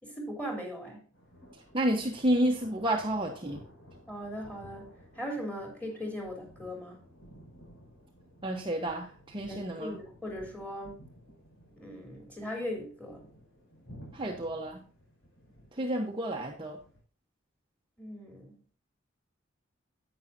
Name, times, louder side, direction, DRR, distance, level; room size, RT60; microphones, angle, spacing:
voice 1, 0.0-1.0 4.1-7.0 9.4-11.1 11.8-13.3 18.0-18.6, equal, 5° left, 1 dB, 3.5 m, -39 dB
sound 1, 1.1-17.0, equal, 90° left, 5.6 m, -54 dB
voice 2, 1.7-3.6 8.4-10.0 14.1-14.9 15.8-16.8, right 1 dB, 25° right, 0 dB, 1.1 m, -30 dB
10.5 x 8.9 x 2.7 m, 0.39 s
head